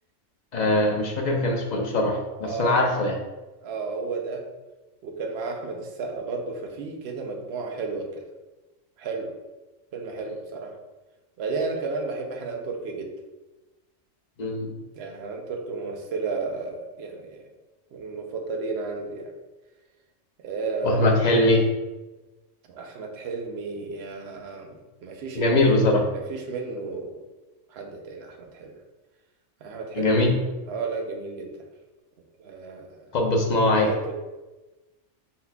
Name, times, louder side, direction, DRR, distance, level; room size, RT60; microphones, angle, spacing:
voice 1, 0.5-3.1 14.4-14.7 20.8-21.6 25.3-26.0 29.9-30.3 33.1-33.9, left 2 dB, 45° left, 1 dB, 0.6 m, -21 dB
voice 2, 2.4-2.8 3.6-4.4 5.0-8.2 9.0-9.3 9.9-10.7 11.4-13.1 14.9-17.5 17.9-19.3 20.4-21.2 22.7-25.8 26.1-27.2 27.7-28.7 29.6-30.3 30.7-31.6 32.4-33.1 33.6-34.1, right 4 dB, 60° right, 3 dB, 0.8 m, -32 dB
4.1 x 4.1 x 2.2 m, 1.1 s
omnidirectional pair, 1.4 m